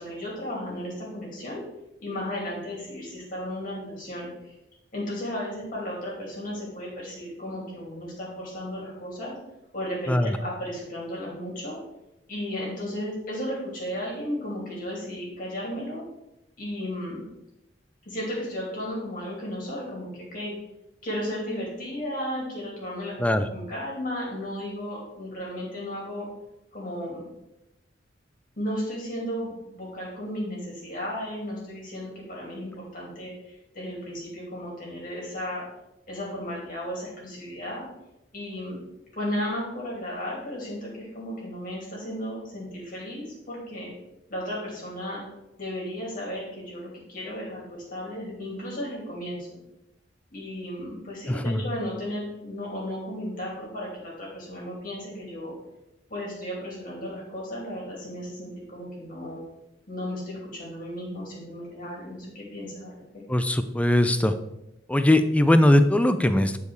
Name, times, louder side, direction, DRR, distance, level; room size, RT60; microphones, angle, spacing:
voice 1, 0.0-1.6 2.0-4.6 4.9-9.4 9.7-11.8 12.3-16.0 16.6-17.2 18.0-20.5 21.0-26.3 26.7-27.2 28.6-35.7 36.1-37.9 38.3-38.8 39.1-43.9 44.3-45.2 45.6-49.5 50.3-55.5 56.1-59.4 59.9-63.2, equal, 50° left, -4 dB, 3.0 m, -34 dB
voice 2, 51.3-51.6 63.3-64.4 64.9-66.6, left 1 dB, 5° left, 10 dB, 0.4 m, -20 dB
9.6 x 4.8 x 4.7 m, 0.90 s
head